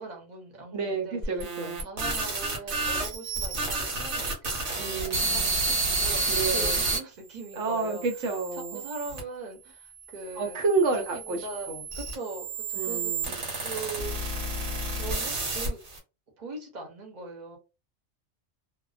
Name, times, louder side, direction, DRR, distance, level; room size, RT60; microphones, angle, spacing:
voice 1, 0.0-1.4 1.8-10.6 11.0-13.1 13.6-14.2 14.9-15.8 16.4-17.6, right 3 dB, 40° right, 1 dB, 0.9 m, -41 dB
voice 2, 0.7-1.8 4.8-5.6 6.3-6.8 7.6-8.8 10.4-11.8 12.8-13.4, right 4 dB, 85° right, 3 dB, 1.1 m, -30 dB
sound 1, 1.2-7.0 7.6-9.2 10.0-16.0, right 3 dB, 70° right, 1.2 m, -30 dB
2.4 x 2.2 x 2.4 m, 0.29 s
omnidirectional pair, 1.3 m